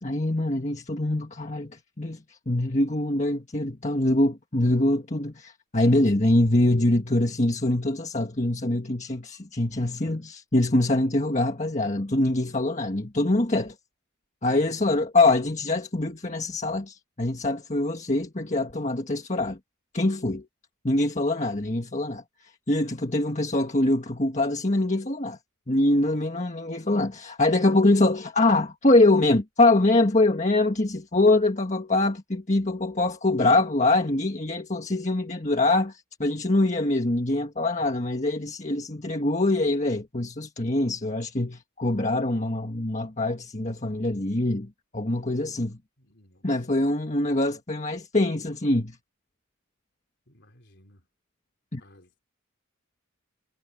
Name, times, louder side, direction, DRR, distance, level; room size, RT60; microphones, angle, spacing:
voice 1, 0.0-13.7 14.4-19.6 19.9-20.5 20.8-25.4 25.7-45.8 46.4-49.0 51.7-51.8, left 2 dB, 30° left, 1.6 m, -24 dB
voice 2, 46.0-46.5 50.3-51.1 51.8-52.2, left 1 dB, 50° left, 4.4 m, -57 dB
head